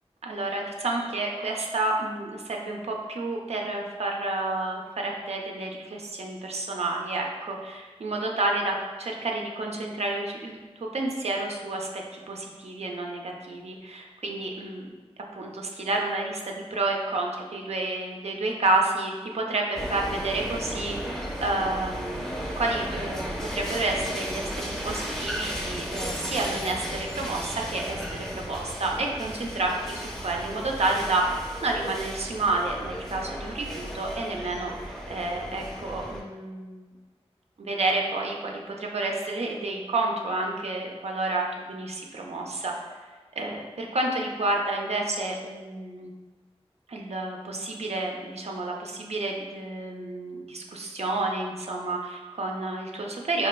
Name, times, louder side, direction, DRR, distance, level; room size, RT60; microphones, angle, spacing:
voice 1, 0.2-10.6 10.9-14.8 15.3-24.5 24.8-31.2 31.6-36.9 37.6-43.0 43.3-46.1 46.9-53.5, right 2 dB, 75° right, 0 dB, 0.5 m, -30 dB
sound 1, 19.7-36.2, equal, 5° left, 0.6 m, -35 dB
4.0 x 2.8 x 2.2 m, 1.3 s
cardioid pair, 45°, 11 cm